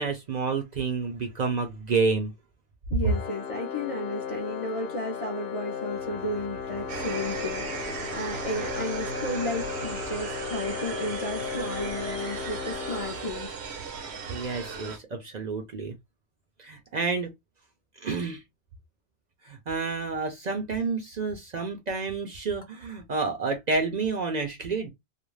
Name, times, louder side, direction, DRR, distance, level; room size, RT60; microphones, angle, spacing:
voice 1, 0.0-2.3 14.3-15.9 16.6-17.3 18.0-18.4 19.5-24.9, right 4 dB, 50° right, 0.6 m, -29 dB
voice 2, 2.9-13.5, left 1 dB, 45° left, 0.5 m, -33 dB
Organ, 3.0-13.8, left 7 dB, 70° left, 0.8 m, -36 dB
sound 1, 6.9-15.0, right 5 dB, 80° right, 0.9 m, -36 dB
2.5 x 2.1 x 3.1 m
omnidirectional pair, 1.1 m